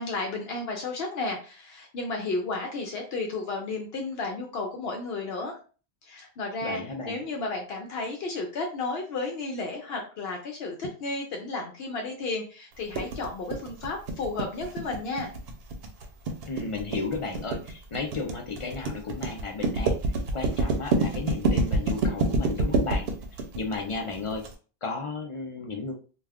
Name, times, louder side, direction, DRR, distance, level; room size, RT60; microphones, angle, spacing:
voice 1, 0.0-5.6 6.1-15.3, left 3 dB, 75° left, 2 dB, 0.8 m, -33 dB
voice 2, 6.6-7.2 16.5-23.1 23.6-24.5 24.8-25.9, left 3 dB, 45° left, 3 dB, 0.5 m, -34 dB
sound 1, 12.9-24.5, right 2 dB, 75° right, 0.8 m, -27 dB
2.3 x 2.3 x 3.4 m, 0.37 s
omnidirectional pair, 1.0 m